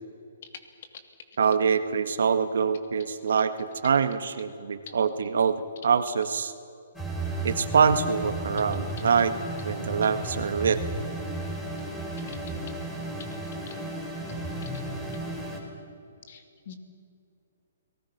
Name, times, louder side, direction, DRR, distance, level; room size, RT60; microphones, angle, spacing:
voice 1, 1.4-6.5 7.4-9.3 9.6-10.8, right 6 dB, 75° right, 10 dB, 1.6 m, -24 dB
sound 1, 6.9-15.6, right 2 dB, 5° left, 4.2 m, -34 dB
voice 2, 16.3-16.7, left 8 dB, 55° left, 7 dB, 2.7 m, -45 dB
30.0 x 19.0 x 6.0 m, 2.5 s
hypercardioid pair, 145°, 0 cm